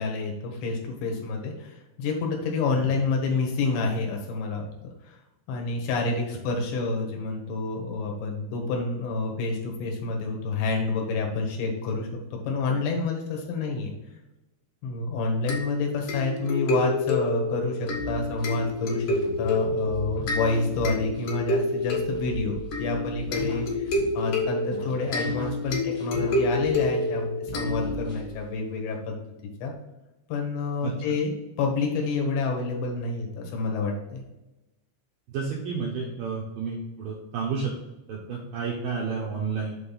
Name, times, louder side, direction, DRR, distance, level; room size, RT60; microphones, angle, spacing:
voice 1, 0.0-4.7 5.0-5.2 5.5-13.9 14.8-29.2 29.6-29.7 30.3-31.3 31.6-34.2, left 3 dB, 75° left, 1 dB, 3.5 m, -28 dB
sound 1, 15.5-28.2, left 2 dB, 55° left, 2.6 m, -28 dB
sound 2, 17.9-24.4 24.7-27.2 27.5-28.5, right 4 dB, 35° left, 1.6 m, -40 dB
voice 2, 35.3-37.7 38.1-39.8, right 5 dB, 75° right, -2 dB, 2.1 m, -31 dB
7.7 x 3.9 x 5.5 m, 1.0 s
omnidirectional pair, 5.3 m